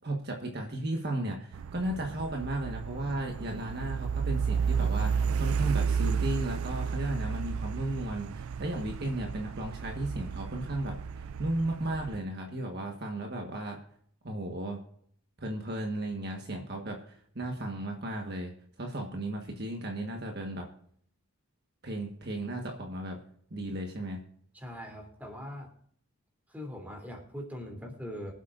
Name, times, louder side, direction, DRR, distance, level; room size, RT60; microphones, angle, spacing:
voice 1, 0.0-13.8 14.2-14.8 15.4-18.5 18.8-20.7 21.8-23.2 23.5-24.2, right 1 dB, 50° right, 2 dB, 1.5 m, -35 dB
sound 1, 1.5-12.2, right 6 dB, 75° right, 0.4 m, -32 dB
voice 2, 24.5-25.7 26.5-28.3, equal, 10° right, 1 dB, 3.2 m, -41 dB
24.0 x 8.2 x 2.6 m, 0.62 s
head